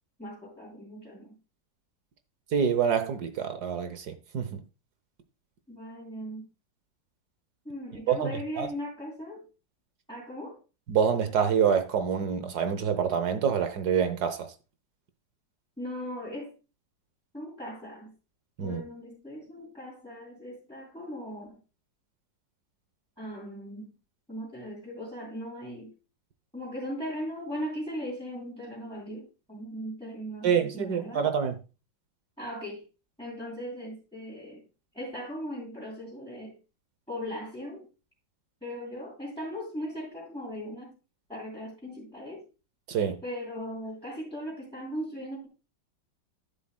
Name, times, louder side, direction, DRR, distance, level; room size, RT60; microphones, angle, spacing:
voice 1, 0.2-1.4 5.7-6.5 7.6-9.4 10.1-10.6 15.8-16.5 17.3-18.1 18.6-21.6 23.2-23.9 24.3-25.9 26.5-31.3 32.4-32.8 33.2-34.6 34.9-36.6 37.1-37.9 38.6-41.0 41.3-42.4 43.2-45.5, equal, 5° left, 3.2 m, -38 dB
voice 2, 2.5-4.6 8.1-8.3 8.6-8.7 10.9-14.5 18.6-18.8 30.4-31.6 42.9-43.2, right 7 dB, 65° right, 1.3 m, -26 dB
11.0 x 7.4 x 2.2 m
omnidirectional pair, 2.0 m